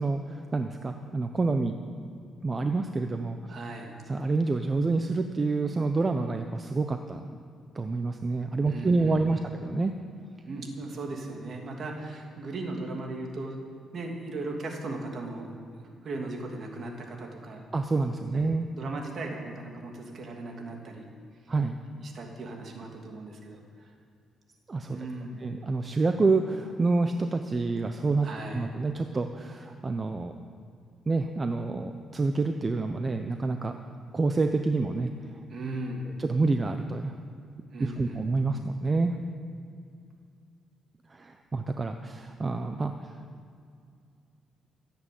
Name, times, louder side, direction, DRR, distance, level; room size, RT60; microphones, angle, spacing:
voice 1, 0.0-1.7 2.4-3.4 4.1-7.3 7.7-9.9 17.7-18.7 21.5-21.8 24.7-25.0 25.4-28.3 28.5-30.3 31.1-33.7 34.1-35.1 36.2-37.1 37.8-39.1 41.1-43.2, right 3 dB, 30° right, 6 dB, 0.8 m, -27 dB
voice 2, 3.5-4.0 8.7-9.4 10.4-13.6 13.9-17.7 18.4-21.1 21.9-23.6 24.9-25.4 28.2-28.7 35.5-36.1 37.7-38.3, right 2 dB, 50° right, 1 dB, 2.7 m, -38 dB
15.0 x 8.8 x 7.8 m, 2.4 s
cardioid pair, 90°, 0 cm